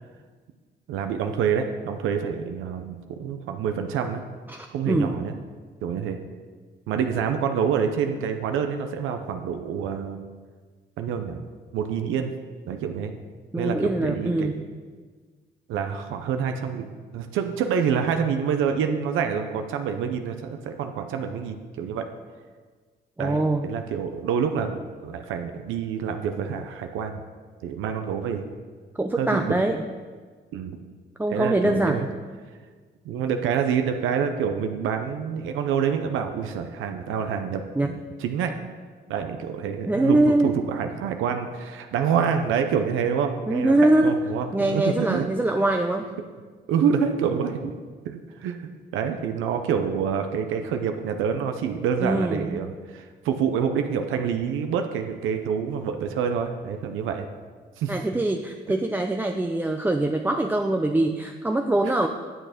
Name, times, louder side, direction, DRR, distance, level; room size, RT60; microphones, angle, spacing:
voice 1, 0.9-4.2 4.7-5.3 5.8-6.2 6.9-10.2 11.0-11.4 11.7-12.3 12.7-13.1 13.6-14.5 15.7-22.1 23.2-27.2 27.6-28.4 29.2-29.5 30.5-30.8 31.3-32.1 33.0-38.5 39.1-43.7 44.0-45.3 46.7-47.7 48.0-48.6 48.9-57.3 57.8-58.0 61.8-61.9, right 7 dB, 90° right, 6 dB, 0.7 m, -27 dB
voice 2, 4.5-5.1 13.5-14.6 23.2-23.7 29.0-29.8 31.2-32.1 37.7-37.9 39.9-40.5 43.5-44.2 44.5-46.1 52.0-52.6 57.9-62.1, right 2 dB, 10° right, 4 dB, 0.5 m, -23 dB
9.0 x 6.3 x 5.1 m, 1.5 s
cardioid pair, 90°, 20 cm